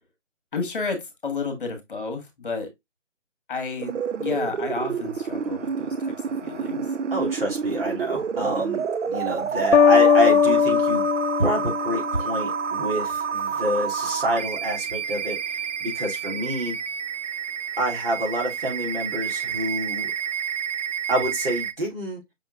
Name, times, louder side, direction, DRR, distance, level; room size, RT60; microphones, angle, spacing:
voice 1, 0.5-2.7 3.5-6.1 6.4-6.8, left 4 dB, 45° left, 1.6 m, -31 dB
sound 1, 3.8-21.7, right 7 dB, 75° right, 0.6 m, -29 dB
voice 2, 7.1-11.1 11.4-16.8 17.8-20.1 21.1-22.2, right 1 dB, 50° right, 2.7 m, -27 dB
sound 2, 9.7-12.5, left 7 dB, 75° left, 0.5 m, -19 dB
5.9 x 3.6 x 2.4 m
figure-of-eight pair, 160°, 37 cm